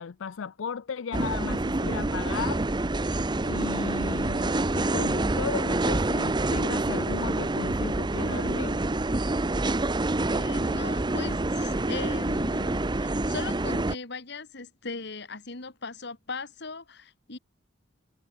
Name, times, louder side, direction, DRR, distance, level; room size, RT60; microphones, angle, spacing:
voice 1, 0.0-2.6 3.4-8.8, left 6 dB, 85° left, 0.5 m, -35 dB
sound 1, 1.1-13.9, right 2 dB, 25° right, 0.8 m, -27 dB
voice 2, 10.3-17.4, left 3 dB, 60° left, 2.3 m, -39 dB
head